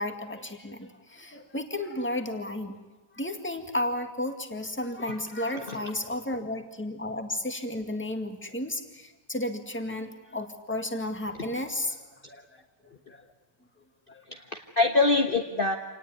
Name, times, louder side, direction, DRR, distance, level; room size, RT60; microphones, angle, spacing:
voice 1, 0.0-2.8 3.1-12.4 12.8-13.2 14.1-14.5, left 1 dB, 5° left, 5 dB, 2.0 m, -33 dB
voice 2, 14.3-15.8, left 3 dB, 35° left, 3 dB, 1.5 m, -25 dB
27.5 x 19.0 x 9.5 m, 1.1 s
omnidirectional pair, 1.9 m